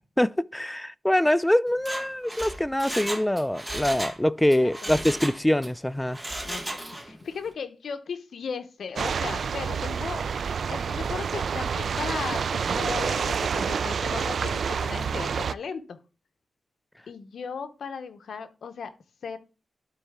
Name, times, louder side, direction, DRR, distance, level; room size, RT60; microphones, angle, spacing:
voice 1, 0.2-6.2, left 1 dB, 10° left, 0.3 m, -24 dB
Mechanisms, 1.7-4.2 4.5-5.7 6.1-7.2 7.5-7.6, right 1 dB, 10° right, 1.3 m, -35 dB
voice 2, 6.4-10.2 10.7-16.0 17.1-18.9 19.2-19.4, left 6 dB, 80° left, 0.8 m, -36 dB
sound 1, 9.0-15.5, right 6 dB, 70° right, 0.3 m, -28 dB
12.0 x 4.2 x 3.6 m
wide cardioid pair, 100°, 0 cm